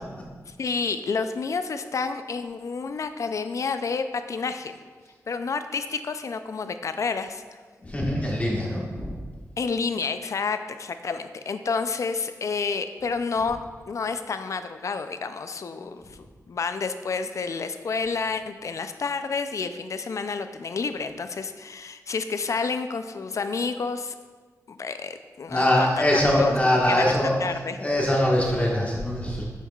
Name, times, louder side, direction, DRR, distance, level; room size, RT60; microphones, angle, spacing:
voice 1, 0.5-4.8 5.3-7.4 9.6-13.6 13.9-16.0 16.5-24.1 24.7-25.9 26.1-26.5 26.9-27.1 27.4-27.8, left 4 dB, 60° left, 10 dB, 0.4 m, -29 dB
voice 2, 7.8-9.2 15.8-15.9 25.5-27.4 27.8-29.4, left 1 dB, 25° left, -3 dB, 1.4 m, -23 dB
7.1 x 5.6 x 2.3 m, 1.5 s
cardioid pair, 70°, 6 cm